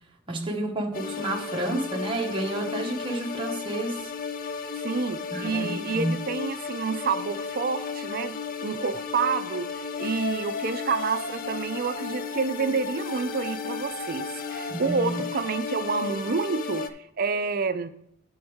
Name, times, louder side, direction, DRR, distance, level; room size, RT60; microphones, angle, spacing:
voice 1, 0.3-4.1 5.3-6.1 14.7-15.2, right 2 dB, 25° right, 1.1 m, -30 dB
sound 1, 0.9-16.9, left 5 dB, 45° left, 0.5 m, -34 dB
voice 2, 4.8-16.8 17.2-17.9, right 5 dB, 50° right, 0.5 m, -29 dB
9.2 x 7.0 x 3.6 m
head